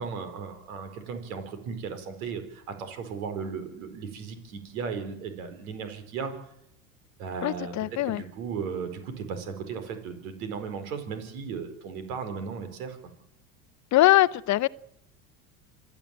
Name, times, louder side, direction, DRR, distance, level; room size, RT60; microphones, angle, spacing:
voice 1, 0.0-6.3 7.2-7.7 8.1-13.0, right 6 dB, 80° right, 4.8 m, -36 dB
voice 2, 7.4-8.2 13.9-14.7, left 15 dB, 45° left, 0.7 m, -22 dB
27.0 x 11.0 x 9.1 m
hypercardioid pair, 90°, 42 cm